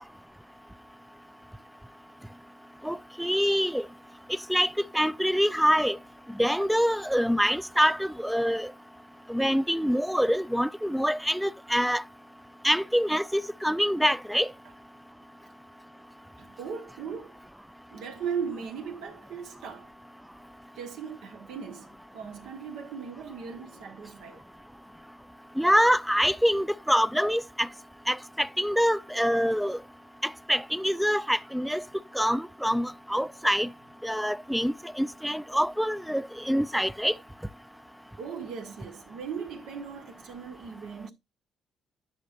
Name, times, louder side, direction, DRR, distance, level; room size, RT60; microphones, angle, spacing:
voice 1, 2.8-3.8 4.5-4.7 4.9-6.0 6.4-8.7 9.3-12.0 12.6-14.5 25.6-27.7 28.1-29.8 30.5-31.8 32.2-33.7 34.0-37.1, equal, ahead, 0.3 m, -25 dB
voice 2, 16.4-17.4 17.9-19.9 20.8-21.9 22.1-24.4 38.2-41.1, right 6 dB, 85° right, 1.5 m, -38 dB
10.0 x 5.8 x 2.6 m
cardioid pair, 90°, 0 cm